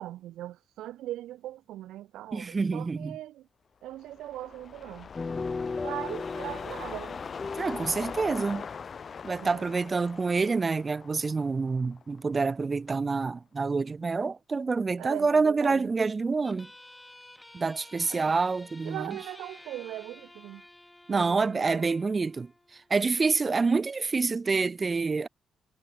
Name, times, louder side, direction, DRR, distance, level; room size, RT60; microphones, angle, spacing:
voice 1, 0.0-3.5 3.8-5.1 5.8-7.2 9.4-9.7 15.0-15.9 18.1-18.4 18.8-20.6 21.1-21.9, right 14 dB, 80° right, 0.5 m, -40 dB
voice 2, 2.3-3.2 7.6-8.6 9.2-16.7 17.5-19.2 21.1-22.5 22.9-25.3, right 4 dB, 35° right, 0.6 m, -27 dB
sound 1, 3.9-12.4 12.7-12.8, left 6 dB, 50° left, 0.4 m, -41 dB
sound 2, 5.2-9.0, left 4 dB, 35° left, 1.6 m, -37 dB
sound 3, 16.4-23.5, left 1 dB, 15° left, 3.6 m, -52 dB
supercardioid pair, 65°, 0 cm